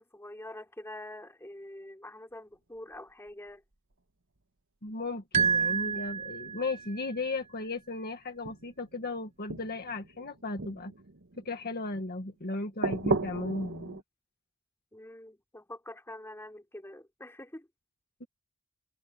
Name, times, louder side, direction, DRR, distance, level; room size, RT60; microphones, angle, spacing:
voice 1, 0.0-3.6 14.9-17.7, left 1 dB, 10° left, 3.6 m, -45 dB
sound 1, 2.9-3.0 5.3-7.5 8.4-9.0 9.5-12.0 12.8-14.0, right 3 dB, 60° right, 1.4 m, -36 dB
voice 2, 4.8-10.9 11.4-14.0 18.2-18.3, left 2 dB, 45° left, 1.8 m, -36 dB
sound 2, 5.3-6.9, right 6 dB, 30° right, 1.3 m, -29 dB
head